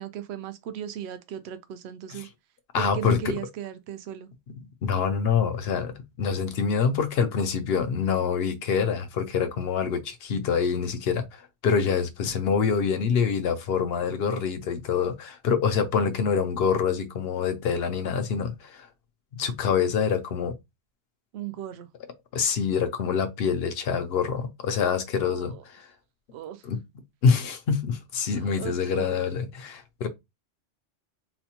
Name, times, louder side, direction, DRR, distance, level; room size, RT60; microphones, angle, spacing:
voice 1, 0.0-2.3 2.7-4.3 21.3-21.9 25.2-25.6 26.3-26.6 28.4-29.2, right 10 dB, 65° right, 0.7 m, -37 dB
voice 2, 2.7-3.4 4.5-18.9 19.3-20.5 22.3-25.9 26.6-26.8 27.2-30.1, left 6 dB, 60° left, 0.7 m, -26 dB
4.1 x 2.1 x 2.8 m
omnidirectional pair, 1.3 m